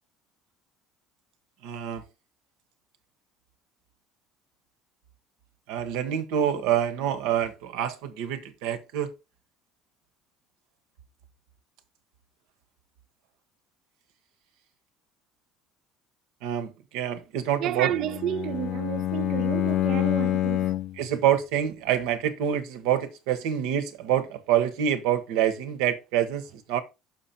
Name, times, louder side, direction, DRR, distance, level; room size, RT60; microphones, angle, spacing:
voice 1, 1.6-2.0 5.7-9.1 16.4-17.9 21.0-26.8, right 10 dB, 85° right, 1.4 m, -26 dB
voice 2, 17.6-20.8, right 12 dB, 50° right, 0.5 m, -31 dB
Bowed string instrument, 17.8-21.0, left 14 dB, 45° left, 0.3 m, -27 dB
6.2 x 5.8 x 4.4 m
cardioid pair, 150°, 0 cm